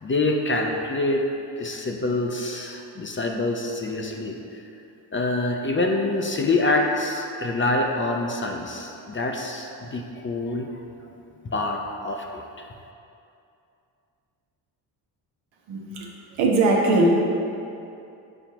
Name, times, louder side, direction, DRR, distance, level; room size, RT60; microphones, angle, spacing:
voice 1, 0.0-1.2 1.6-4.6 5.1-10.7 11.4-12.7, left 2 dB, 25° left, 2 dB, 0.6 m, -26 dB
voice 2, 15.7-16.1 16.4-17.2, right 2 dB, 75° right, -1 dB, 1.1 m, -20 dB
7.1 x 4.7 x 2.9 m, 2.7 s
supercardioid pair, 70°, 49 cm